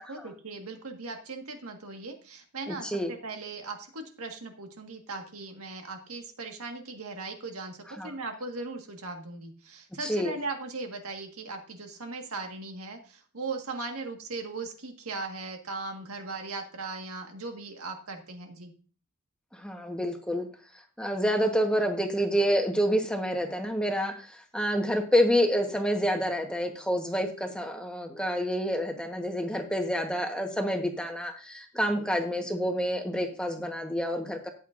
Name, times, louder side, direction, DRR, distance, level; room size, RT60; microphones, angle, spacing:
voice 1, 0.0-18.7, right 3 dB, 80° right, 4 dB, 1.7 m, -38 dB
voice 2, 2.7-3.1 8.0-8.1 10.0-10.3 19.6-20.5 21.0-34.5, equal, 5° left, 3 dB, 1.2 m, -28 dB
13.5 x 9.0 x 2.6 m, 0.39 s
head